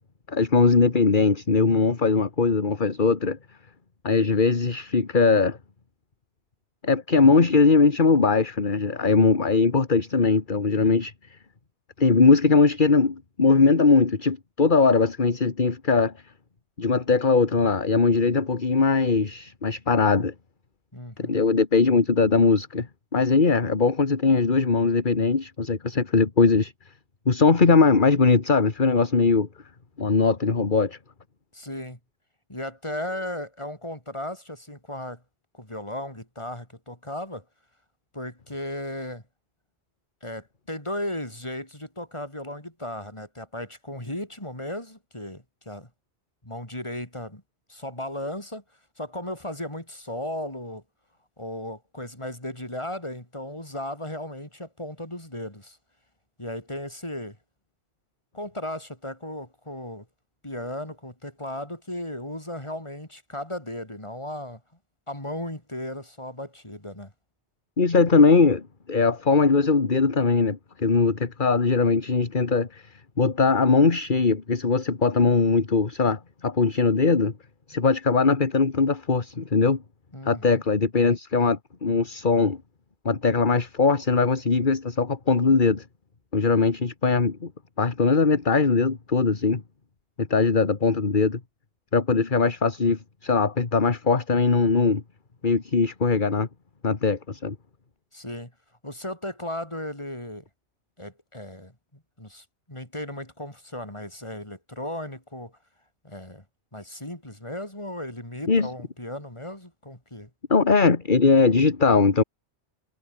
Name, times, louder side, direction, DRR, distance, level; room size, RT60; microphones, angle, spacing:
voice 1, 0.3-3.4 4.0-5.6 6.8-11.1 12.0-16.1 16.8-20.3 21.2-22.9 23.1-26.7 27.3-29.5 30.0-31.0 67.8-68.6 68.9-72.8 73.2-77.3 77.7-79.8 80.3-82.6 83.1-85.8 86.3-87.5 87.8-89.6 90.2-91.4 91.9-95.0 95.4-96.5 96.8-97.6 108.5-108.7 110.5-112.2, left 4 dB, 45° left, 1.9 m, -20 dB
voice 2, 20.9-21.4 31.5-32.0 32.5-35.2 35.5-37.4 38.1-39.2 40.2-45.9 46.4-47.4 47.7-48.6 49.0-50.8 51.4-55.8 56.4-57.4 58.3-60.1 60.4-64.6 65.1-67.1 80.1-80.6 98.1-98.5 98.8-100.4 101.0-105.5 106.0-106.4 106.7-110.3, left 1 dB, 25° left, 5.3 m, -36 dB
omnidirectional pair, 1.1 m